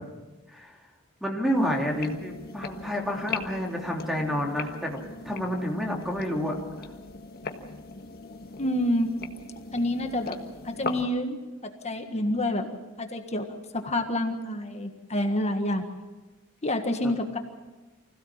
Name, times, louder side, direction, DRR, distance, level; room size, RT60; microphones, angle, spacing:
voice 1, 1.2-5.0 5.2-6.6 17.0-17.1, equal, ahead, 0 dB, 3.1 m, -29 dB
sound 1, 1.5-11.0, left 4 dB, 50° left, 1.5 m, -40 dB
voice 2, 8.6-9.1 9.7-10.4 10.6-11.4 11.8-12.7 13.0-15.8 16.6-17.4, left 1 dB, 30° left, 5 dB, 1.6 m, -28 dB
25.0 x 16.5 x 7.4 m, 1.2 s
head